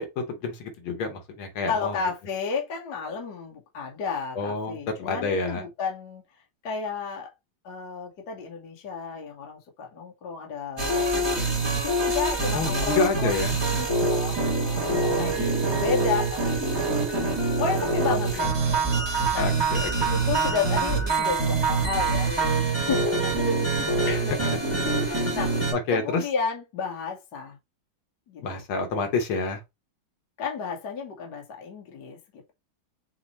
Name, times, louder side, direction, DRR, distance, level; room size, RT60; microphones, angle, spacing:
voice 1, 0.0-2.0 4.4-5.6 12.5-13.6 15.0-15.9 18.1-18.2 19.4-20.1 24.1-24.6 25.7-26.2 28.4-29.6, left 3 dB, 80° left, 1.9 m, -29 dB
voice 2, 1.7-6.2 6.6-7.3 7.6-17.2 17.6-19.1 19.3-19.5 20.1-23.9 24.2-25.5 25.9-27.6 28.3-28.6 30.4-32.5, left 5 dB, 55° left, 1.5 m, -33 dB
sound 1, 10.8-25.7, right 3 dB, 20° right, 0.7 m, -25 dB
5.7 x 2.0 x 4.1 m
omnidirectional pair, 2.3 m